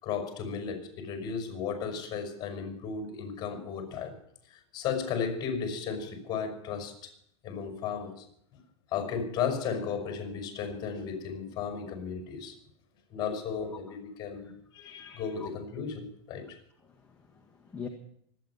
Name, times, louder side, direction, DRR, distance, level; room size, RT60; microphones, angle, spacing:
voice 1, 0.0-4.1 4.5-7.1 7.4-8.2 8.9-12.5 13.1-16.6, left 6 dB, 30° left, 5.6 m, -35 dB
voice 2, 15.0-15.5 16.8-17.9, left 6 dB, 10° left, 1.6 m, -45 dB
24.5 x 9.4 x 5.7 m
supercardioid pair, 135°, 14 cm